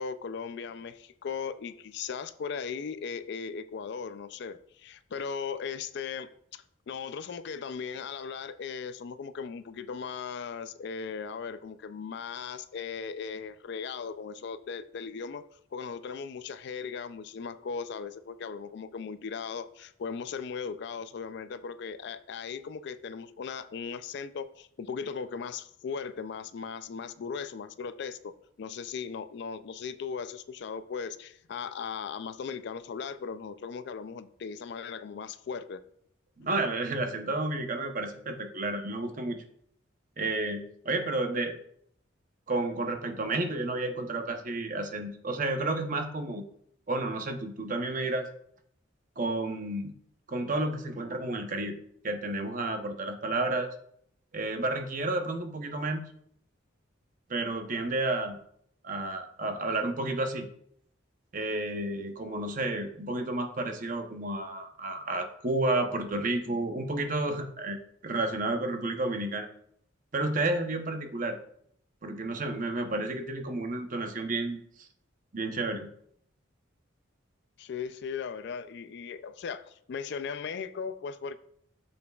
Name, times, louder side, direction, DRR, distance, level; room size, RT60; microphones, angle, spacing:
voice 1, 0.0-15.4 15.7-35.8 77.6-81.4, left 6 dB, 60° left, 0.3 m, -38 dB
voice 2, 36.4-39.4 40.2-41.6 42.5-46.4 46.9-48.3 49.2-49.9 50.3-51.8 52.0-53.7 54.3-56.0 57.3-58.4 58.8-60.5 61.3-69.5 70.1-71.4 72.0-74.9 75.3-75.9, right 2 dB, 40° right, 0.8 m, -31 dB
8.1 x 7.0 x 2.3 m
head